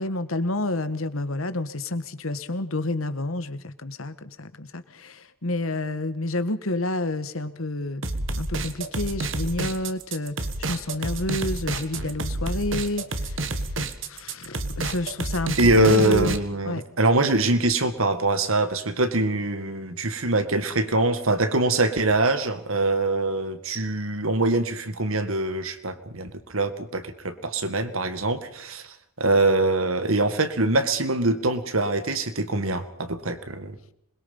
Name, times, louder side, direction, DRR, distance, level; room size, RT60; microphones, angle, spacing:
voice 1, 0.0-8.0 8.4-13.6 14.1-16.4 16.6-16.8, left 2 dB, 90° left, 12 dB, 1.5 m, -29 dB
sound 1, 8.0-16.4, right 2 dB, 65° right, 1.7 m, -29 dB
voice 2, 15.6-28.8 29.2-33.8, right 2 dB, 90° right, 10 dB, 2.0 m, -23 dB
26.5 x 21.5 x 5.6 m, 0.72 s
head